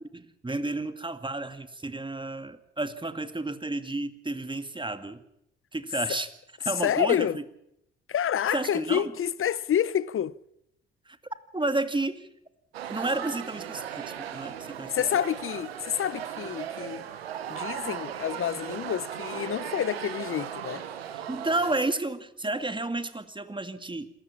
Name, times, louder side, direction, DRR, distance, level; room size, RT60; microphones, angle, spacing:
voice 1, 0.1-5.2 5.7-6.3 6.6-7.4 8.5-9.1 11.1-11.2 11.5-12.3 12.9-14.9 21.1-24.1, right 2 dB, 15° right, 2.1 m, -31 dB
voice 2, 6.8-7.4 8.1-10.3 14.9-17.0 17.5-20.8, left 9 dB, 45° left, 0.8 m, -28 dB
sound 1, 12.7-21.8, right 9 dB, 90° right, 1.3 m, -37 dB
27.0 x 14.0 x 7.4 m
hypercardioid pair, 50°, 30 cm